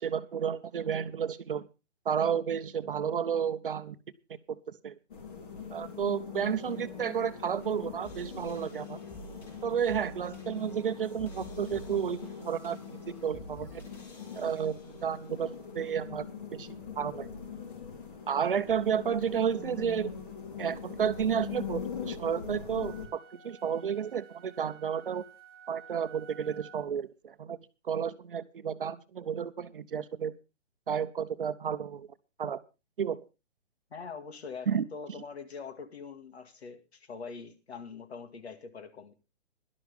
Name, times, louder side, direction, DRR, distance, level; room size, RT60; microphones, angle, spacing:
voice 1, 0.0-1.6 2.1-4.0 4.8-4.9 5.7-9.0 9.6-13.8 14.3-16.2 16.5-16.7 17.0-17.4 18.3-20.1 20.6-25.2 25.7-27.6 27.8-30.3 30.9-32.1 32.4-32.6 33.0-33.2 34.7-34.8, right 7 dB, 45° right, 0.9 m, -31 dB
sound 1, 5.1-23.1, left 6 dB, 45° left, 3.9 m, -42 dB
sound 2, 6.2-15.4, right 1 dB, 5° left, 4.4 m, -51 dB
sound 3, 22.7-27.0, right 6 dB, 20° right, 1.0 m, -53 dB
voice 2, 33.9-39.1, left 5 dB, 60° left, 2.2 m, -43 dB
17.5 x 12.0 x 3.5 m
hypercardioid pair, 175°, 36 cm